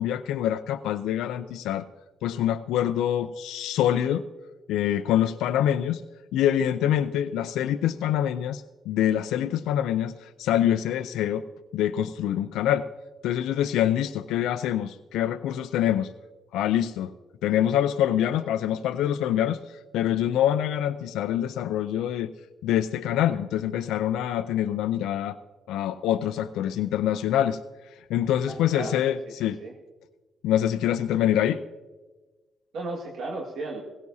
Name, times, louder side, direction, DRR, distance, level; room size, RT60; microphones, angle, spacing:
voice 1, 0.0-1.9 2.2-4.3 4.7-6.0 6.3-11.5 11.7-12.9 13.2-16.1 16.5-17.1 17.4-22.3 22.6-25.4 25.7-27.6 27.9-29.6 30.4-31.6, left 11 dB, 90° left, 9 dB, 0.5 m, -25 dB
voice 2, 28.5-29.3 29.6-29.7 32.7-33.8, right 2 dB, 70° right, -1 dB, 1.9 m, -35 dB
18.0 x 16.5 x 2.8 m, 1.2 s
cardioid pair, 90°, 0 cm